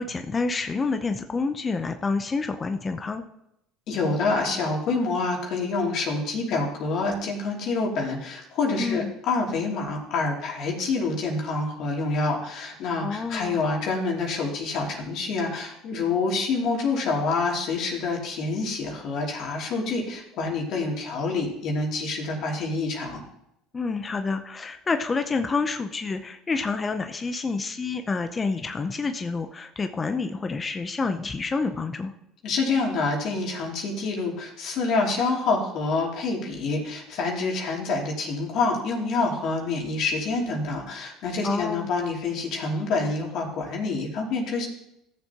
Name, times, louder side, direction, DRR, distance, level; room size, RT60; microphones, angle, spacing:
voice 1, 0.0-3.2 8.8-9.1 13.0-13.6 23.7-32.1 41.4-41.9, left 4 dB, 25° left, 7 dB, 0.8 m, -28 dB
voice 2, 3.9-23.2 32.4-44.7, left 3 dB, 60° left, -1 dB, 2.9 m, -27 dB
16.0 x 7.1 x 3.0 m, 0.82 s
supercardioid pair, 80°, 0 cm